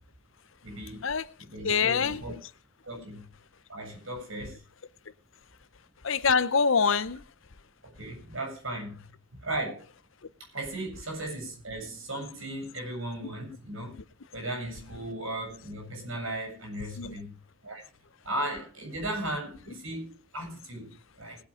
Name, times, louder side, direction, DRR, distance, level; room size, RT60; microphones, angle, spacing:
voice 1, 0.6-1.0 1.4-2.3 2.8-3.3 3.7-4.6 7.8-9.1 9.4-9.8 10.4-13.9 14.3-17.3 17.6-17.8 18.2-21.4, right 1 dB, 70° right, 7.2 m, -36 dB
voice 2, 1.6-2.2 6.0-7.2 17.0-17.1, left 5 dB, 70° left, 0.8 m, -24 dB
21.0 x 8.2 x 5.1 m
head